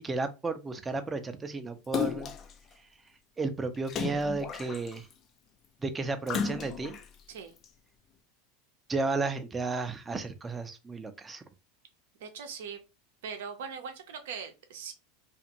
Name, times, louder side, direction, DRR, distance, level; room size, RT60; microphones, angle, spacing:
voice 1, 0.0-2.3 3.4-5.1 5.8-7.0 8.9-11.4, right 3 dB, 20° right, 8 dB, 0.5 m, -33 dB
Splash splatter, 1.9-2.5 3.9-5.1 6.3-7.0 7.6-7.7, left 7 dB, 40° left, 0.4 m, -33 dB
voice 2, 12.2-12.8 13.2-14.9, right 6 dB, 75° right, 7 dB, 0.6 m, -40 dB
2.5 x 2.4 x 2.8 m, 0.27 s
hypercardioid pair, 95°, 0 cm